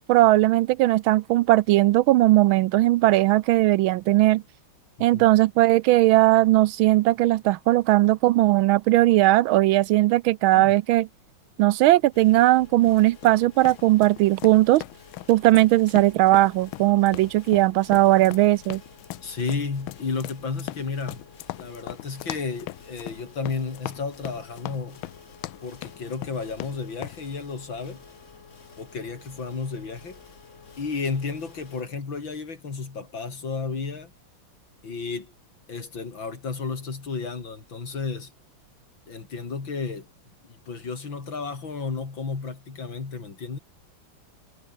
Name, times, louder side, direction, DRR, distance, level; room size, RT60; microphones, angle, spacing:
voice 1, 0.1-4.4 5.0-11.1 11.6-14.8 15.3-18.8, right 17 dB, 80° right, 1.3 m, -18 dB
sound 1, 12.1-31.8, left 5 dB, 35° left, 2.0 m, -50 dB
sound 2, 12.9-27.2, left 16 dB, 80° left, 1.4 m, -39 dB
voice 2, 19.2-21.3 21.6-25.0 25.6-28.0 28.8-30.2 30.8-34.1 34.8-35.3 35.7-38.3 39.1-40.1 40.4-43.6, left 4 dB, 65° left, 4.2 m, -32 dB
omnidirectional pair, 2.3 m